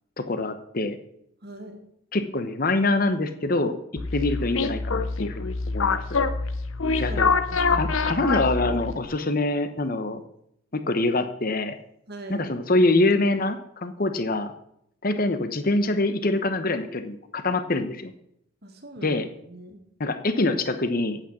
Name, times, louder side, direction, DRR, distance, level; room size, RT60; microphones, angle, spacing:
voice 1, 0.2-1.0 2.1-3.8 4.1-6.0 7.0-7.3 7.7-10.2 10.7-11.7 12.3-14.5 15.0-18.1 19.0-19.3 20.0-21.2, left 2 dB, 45° left, 9 dB, 1.0 m, -25 dB
voice 2, 1.4-1.9 7.0-7.2 7.5-8.0 12.1-12.5 18.6-19.2 19.5-19.8, right 1 dB, 50° right, 4 dB, 1.9 m, -40 dB
sound 1, 4.0-9.1, left 4 dB, 85° left, 0.8 m, -25 dB
8.9 x 8.9 x 6.2 m, 0.73 s
head